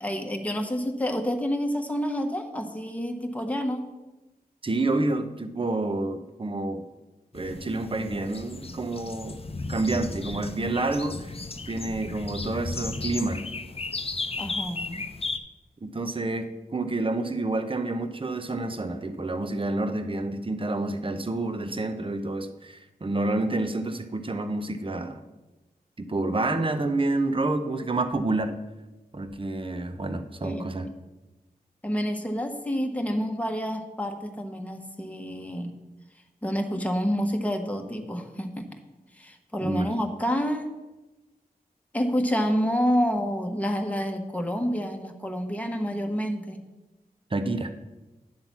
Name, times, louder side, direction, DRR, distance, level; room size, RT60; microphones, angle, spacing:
voice 1, 0.0-3.8 14.4-15.1 30.4-30.7 31.8-35.8 36.4-38.7 39.1-40.7 41.9-46.6, equal, 10° left, 3 dB, 1.2 m, -28 dB
voice 2, 4.6-6.8 7.3-11.4 11.7-13.4 15.8-25.2 26.0-28.6 29.1-30.9 39.6-39.9 47.3-47.7, right 2 dB, 35° right, 8 dB, 0.8 m, -29 dB
sound 1, 7.3-15.4, left 3 dB, 35° left, 0.7 m, -35 dB
10.5 x 3.9 x 7.2 m, 1.1 s
cardioid pair, 45°, 16 cm